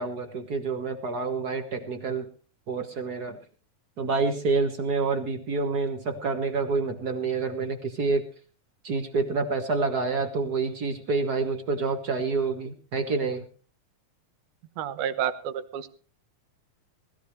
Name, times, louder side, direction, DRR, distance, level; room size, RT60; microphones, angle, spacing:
voice 1, 0.0-2.3 2.7-3.4 4.0-8.2 8.8-13.4, right 4 dB, 55° right, 6 dB, 1.1 m, -28 dB
voice 2, 14.8-15.9, right 9 dB, 70° right, 11 dB, 2.4 m, -30 dB
20.0 x 15.0 x 3.2 m, 0.37 s
omnidirectional pair, 3.9 m